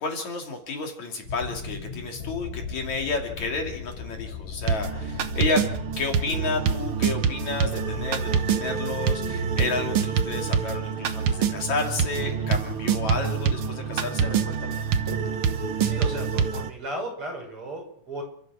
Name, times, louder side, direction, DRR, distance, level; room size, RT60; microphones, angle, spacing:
voice 1, 0.0-5.7 6.0-14.8, left 3 dB, 60° left, 2 dB, 4.1 m, -31 dB
sound 1, 1.2-6.2 7.8-13.5, left 2 dB, 40° left, 5.7 m, -43 dB
sound 2, 2.2-10.4, left 7 dB, 90° left, 3.1 m, -40 dB
sound 3, 4.7-16.7, right 6 dB, 55° right, 1.5 m, -26 dB
voice 2, 15.8-18.2, right 1 dB, 40° right, 1 dB, 7.3 m, -35 dB
30.0 x 14.0 x 6.3 m, 0.64 s
omnidirectional pair, 3.7 m